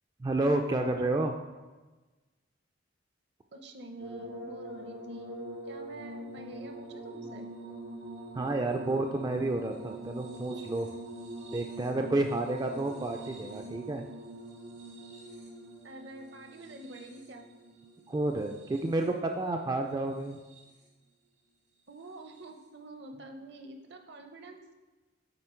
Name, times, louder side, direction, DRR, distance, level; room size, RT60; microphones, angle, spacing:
voice 1, 0.2-1.3 8.3-10.9 11.5-14.1 18.1-20.4, right 2 dB, 20° right, 4 dB, 0.3 m, -30 dB
voice 2, 3.5-5.3 5.7-7.5 15.8-17.4 21.9-24.7, right 2 dB, 60° right, 4 dB, 0.8 m, -47 dB
sound 1, 4.0-19.2 20.1-20.8 22.2-22.4, right 1 dB, 80° right, 2.3 m, -44 dB
8.0 x 4.1 x 4.4 m, 1.2 s
head